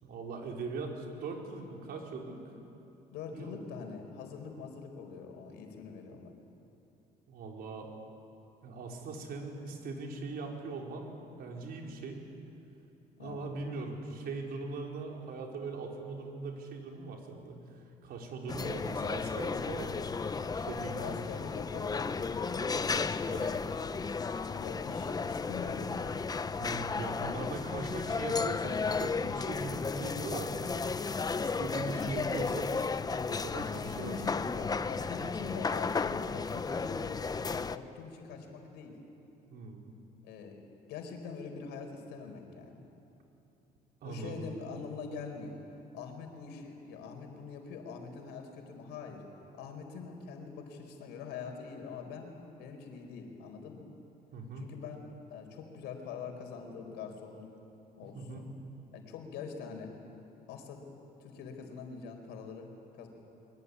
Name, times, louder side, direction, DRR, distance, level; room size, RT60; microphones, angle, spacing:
voice 1, 0.0-2.4 3.3-3.5 7.3-7.9 8.6-11.1 11.4-12.2 13.2-19.9 20.5-21.2 23.3-23.6 26.5-31.0 31.4-32.7 33.3-34.2 35.2-35.3 39.5-39.8 44.0-44.4 54.3-54.7 58.0-58.4, right 3 dB, 65° right, 0 dB, 4.8 m, -41 dB
voice 2, 3.1-6.3 13.2-13.4 20.9-23.0 24.6-26.2 31.8-32.2 33.7-37.2 37.6-39.0 40.2-40.6 40.9-42.9 44.0-45.6 45.9-49.2 49.5-52.3 52.6-53.9 54.6-57.5 58.0-58.5 58.9-59.9 60.5-60.8 61.2-62.7 63.0-63.1, left 5 dB, 90° left, 4 dB, 4.7 m, -44 dB
sound 1, 18.5-37.8, left 4 dB, 20° left, 0.8 m, -34 dB
23.5 x 23.5 x 9.8 m, 3.0 s
cardioid pair, 110°, 17 cm